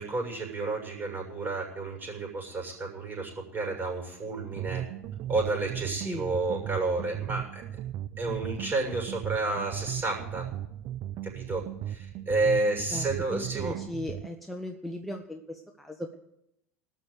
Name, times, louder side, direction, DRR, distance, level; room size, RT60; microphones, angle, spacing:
voice 1, 0.0-4.8 5.3-7.6 8.2-10.4 11.3-13.7, right 3 dB, 25° right, 0 dB, 6.6 m, -31 dB
sound 1, 4.5-14.3, right 11 dB, 45° right, 0.6 m, -37 dB
voice 2, 12.9-16.2, left 1 dB, ahead, 2 dB, 1.1 m, -37 dB
18.5 x 6.4 x 8.5 m, 0.83 s
figure-of-eight pair, 75°, 8 cm